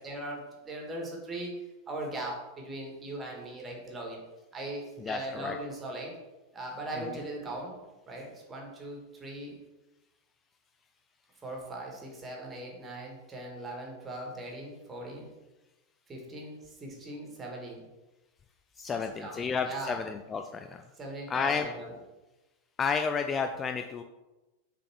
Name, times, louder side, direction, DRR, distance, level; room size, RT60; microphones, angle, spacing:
voice 1, 0.0-1.6 1.9-4.2 4.5-6.2 6.5-7.8 8.1-9.5 11.4-15.3 16.1-17.9 18.9-20.0 21.0-22.0, right 1 dB, 20° right, 0 dB, 1.8 m, -39 dB
voice 2, 5.1-5.5 18.8-20.8 21.3-21.7 22.8-24.0, left 5 dB, 20° left, 6 dB, 0.3 m, -31 dB
6.7 x 3.8 x 4.6 m, 1.1 s
figure-of-eight pair, 90°, 0 cm